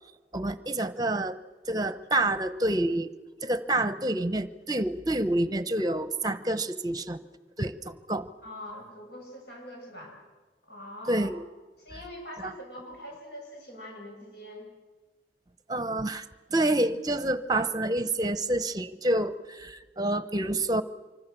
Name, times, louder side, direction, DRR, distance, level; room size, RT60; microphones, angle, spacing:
voice 1, 0.3-1.4 1.7-3.1 3.4-7.2 7.6-8.3 11.1-11.4 12.4-12.5 15.7-16.2 16.5-20.8, right 1 dB, 20° right, 13 dB, 0.9 m, -28 dB
voice 2, 8.4-10.1 10.7-11.3 11.8-14.7, left 1 dB, 70° left, -1 dB, 7.8 m, -43 dB
25.0 x 25.0 x 6.9 m, 1.2 s
head